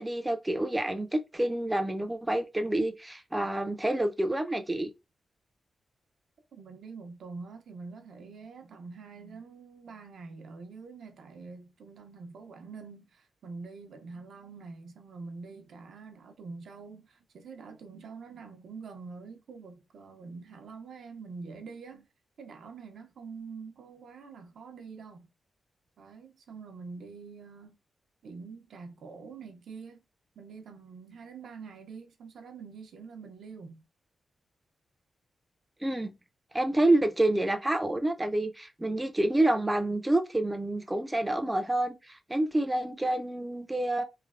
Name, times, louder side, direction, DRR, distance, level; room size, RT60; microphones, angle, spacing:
voice 1, 0.0-4.9 35.8-36.1 36.5-44.0, right 1 dB, 10° right, 0.3 m, -28 dB
voice 2, 6.5-22.1 22.4-25.3 26.0-27.8 28.2-30.0 30.4-33.8, right 4 dB, 80° right, 0.5 m, -45 dB
3.1 x 2.0 x 2.4 m
wide cardioid pair, 125°, 0 cm